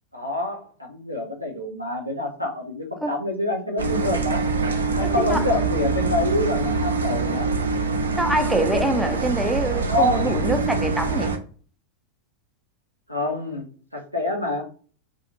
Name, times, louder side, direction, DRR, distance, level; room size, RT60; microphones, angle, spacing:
voice 1, 0.1-4.4 4.9-7.6 9.8-10.4 13.1-14.6, left 1 dB, 90° left, 0.7 m, -26 dB
sound 1, 3.8-11.4, right 4 dB, 70° right, 0.4 m, -24 dB
voice 2, 5.0-5.5 8.2-11.4, right 1 dB, 5° right, 0.3 m, -25 dB
2.4 x 2.4 x 2.9 m
figure-of-eight pair, 90°, 0 cm